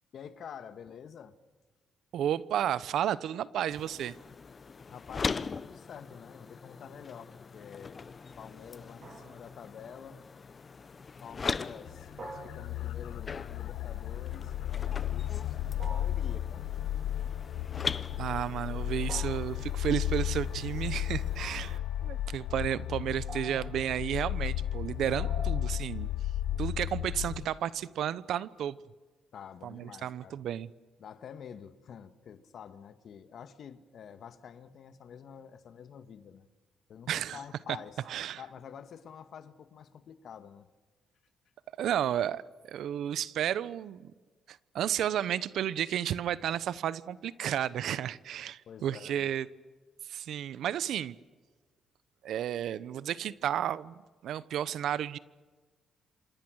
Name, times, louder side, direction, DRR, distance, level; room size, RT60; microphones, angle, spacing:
voice 1, 0.1-1.4 4.9-8.0 8.4-10.2 11.2-15.6 15.9-16.7 29.3-30.4 31.0-36.5 36.9-38.0 38.4-40.7 48.6-49.3, left 7 dB, 60° left, 1.7 m, -48 dB
voice 2, 2.1-4.2 18.2-26.1 26.6-28.8 29.6-30.7 37.1-37.4 38.1-38.4 41.8-42.4 42.7-44.1 44.5-49.5 50.1-51.2 52.2-55.2, right 10 dB, 75° right, 0.9 m, -32 dB
sound 1, 3.7-21.8, left 5 dB, 35° left, 0.8 m, -41 dB
sound 2, 9.0-9.7 12.2-13.1 15.8-16.4 19.1-19.8 21.4-21.9 23.3-23.9 25.2-25.8, right 3 dB, 50° right, 7.6 m, -46 dB
sound 3, 11.9-27.5, left 12 dB, 85° left, 0.8 m, -34 dB
27.5 x 27.0 x 6.4 m
cardioid pair, 90°, 0 cm